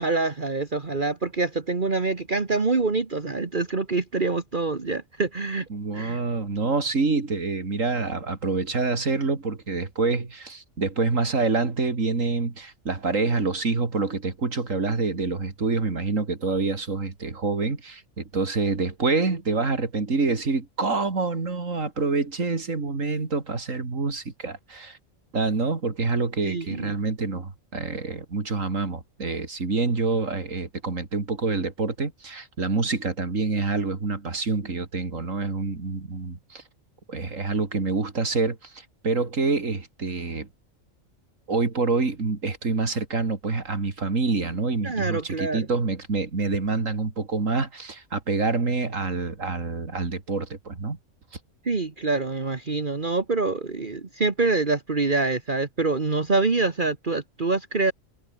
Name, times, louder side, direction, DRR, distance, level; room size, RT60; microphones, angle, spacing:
voice 1, 0.0-5.7 5.9-6.2 26.4-26.9 44.8-45.7 51.7-57.9, right 3 dB, 40° right, 1.8 m, -25 dB
voice 2, 5.7-25.0 25.3-36.6 37.1-40.5 41.5-51.0, right 3 dB, 80° right, 3.2 m, -27 dB
omnidirectional pair, 1.3 m